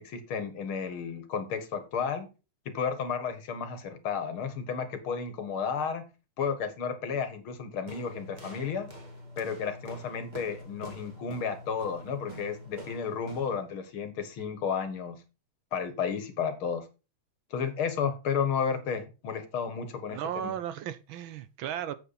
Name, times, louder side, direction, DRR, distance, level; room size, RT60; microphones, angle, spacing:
voice 1, 0.0-2.3 2.7-6.1 6.4-8.9 9.4-15.2 15.7-16.9 17.5-20.5, left 6 dB, 75° left, 2.3 m, -32 dB
sound 1, 7.9-13.7, equal, 20° right, 2.3 m, -45 dB
voice 2, 20.1-21.9, right 10 dB, 70° right, 1.5 m, -35 dB
8.5 x 8.0 x 4.1 m
omnidirectional pair, 2.4 m